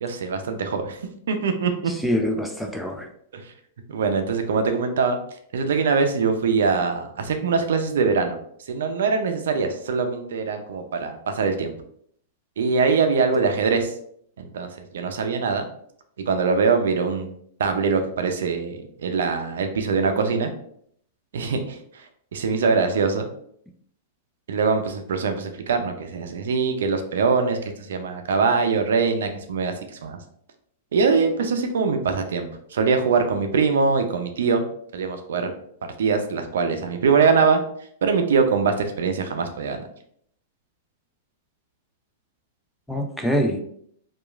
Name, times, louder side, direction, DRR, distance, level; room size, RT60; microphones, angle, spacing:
voice 1, 0.0-1.0 1.3-1.9 3.3-3.5 3.9-5.2 5.5-8.4 8.7-11.7 12.6-14.0 14.4-14.7 14.9-15.7 16.3-17.3 17.6-20.5 21.3-22.0 22.3-23.3 24.5-27.6 27.9-29.7 30.0-30.2 30.9-34.6 34.9-35.5 36.0-37.6 38.0-39.8, right 5 dB, 80° right, 6 dB, 0.4 m, -22 dB
voice 2, 2.0-3.1 42.9-43.6, equal, 5° left, 3 dB, 0.4 m, -24 dB
2.8 x 2.3 x 2.3 m, 0.66 s
hypercardioid pair, 120°, 0 cm